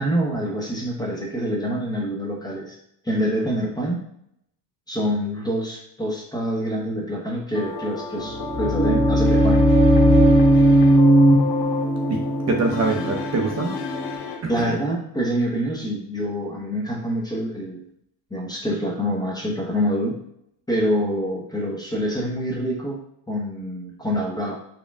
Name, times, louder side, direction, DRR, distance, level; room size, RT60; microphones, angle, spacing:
voice 1, 0.0-2.8 3.0-4.0 4.9-9.7 14.5-17.8 18.3-20.2 20.7-23.0 23.3-24.6, equal, 10° left, -2 dB, 0.7 m, -26 dB
sound 1, 7.5-14.4, left 5 dB, 70° left, 0.9 m, -32 dB
sound 2, 8.2-14.1, right 1 dB, 25° left, 1.1 m, -17 dB
voice 2, 12.1-13.8 14.4-14.8, right 3 dB, 35° right, 1 dB, 0.6 m, -24 dB
4.2 x 2.2 x 3.5 m, 0.73 s
cardioid pair, 115°, 44 cm